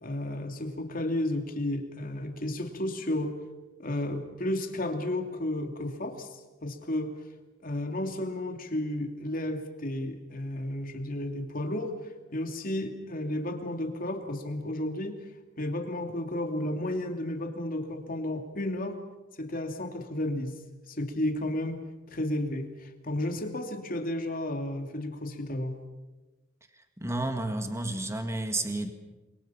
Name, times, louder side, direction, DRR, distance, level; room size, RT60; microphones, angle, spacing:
voice 1, 0.0-3.4 3.8-7.1 7.6-12.0 12.3-15.1 15.6-19.0 19.4-20.5 20.9-21.8 22.1-25.7, left 1 dB, 45° left, 4 dB, 2.8 m, -32 dB
voice 2, 26.7-28.9, right 2 dB, 15° right, 6 dB, 1.9 m, -31 dB
30.0 x 23.5 x 5.8 m, 1.2 s
head